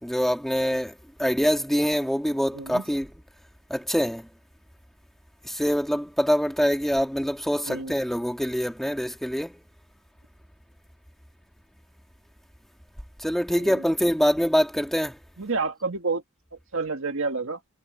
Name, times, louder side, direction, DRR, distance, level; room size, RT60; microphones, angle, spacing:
voice 1, 0.0-3.1 3.7-4.3 5.4-9.6 13.2-15.2, equal, ahead, 3.0 m, -25 dB
voice 2, 2.5-2.8 7.6-7.9 13.5-13.8 15.4-16.2 16.7-17.6, right 4 dB, 65° right, 1.7 m, -29 dB
head